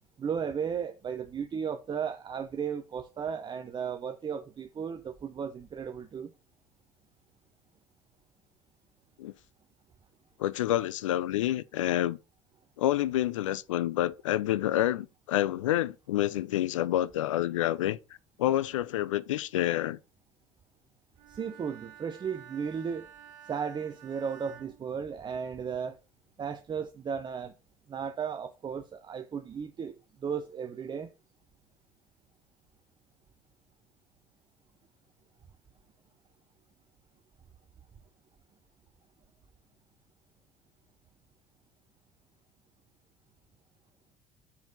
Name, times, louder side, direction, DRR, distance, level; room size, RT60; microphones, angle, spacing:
voice 1, 0.2-6.3 21.3-23.1 23.4-26.0 26.4-27.5 27.9-31.1, right 7 dB, 30° right, 0.7 m, -35 dB
voice 2, 10.4-12.2 12.8-18.0 18.4-20.0, left 13 dB, 80° left, 0.4 m, -28 dB
Bowed string instrument, 21.2-25.7, right 10 dB, 70° right, 1.0 m, -52 dB
5.6 x 4.6 x 5.2 m
hypercardioid pair, 65°, 16 cm